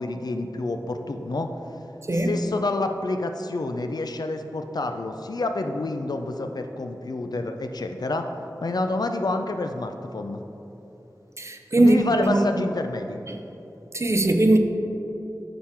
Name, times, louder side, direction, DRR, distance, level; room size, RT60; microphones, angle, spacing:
voice 1, 0.0-1.5 2.1-8.3 8.6-10.4 11.8-13.2, left 2 dB, 65° left, 6 dB, 0.4 m, -28 dB
voice 2, 11.4-12.4 13.3-13.4 13.9-14.6, right 1 dB, 40° right, 5 dB, 0.5 m, -20 dB
8.8 x 3.7 x 4.4 m, 3.0 s
wide cardioid pair, 60°, 7 cm